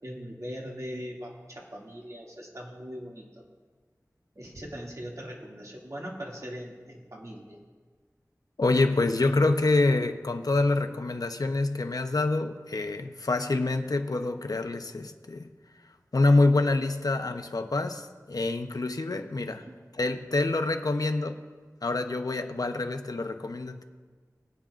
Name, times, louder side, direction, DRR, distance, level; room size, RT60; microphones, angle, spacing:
voice 1, 0.0-3.2 4.4-7.6 19.4-19.8, equal, 60° right, -3 dB, 2.3 m, -40 dB
voice 2, 8.6-15.5 16.1-19.6 20.0-21.4 21.8-23.8, left 2 dB, 80° left, 7 dB, 0.7 m, -26 dB
21.5 x 9.1 x 2.5 m, 1.4 s
wide cardioid pair, 50°, 6 cm